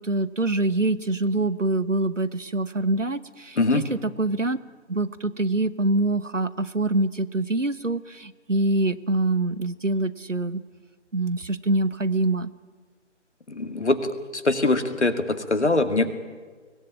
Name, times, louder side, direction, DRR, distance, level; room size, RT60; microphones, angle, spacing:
voice 1, 0.0-4.6 4.9-10.6 11.1-12.5, right 2 dB, 90° right, 15 dB, 1.2 m, -25 dB
voice 2, 13.5-16.1, left 2 dB, 65° left, 8 dB, 2.3 m, -23 dB
24.0 x 17.5 x 8.7 m, 1.5 s
figure-of-eight pair, 150°, 36 cm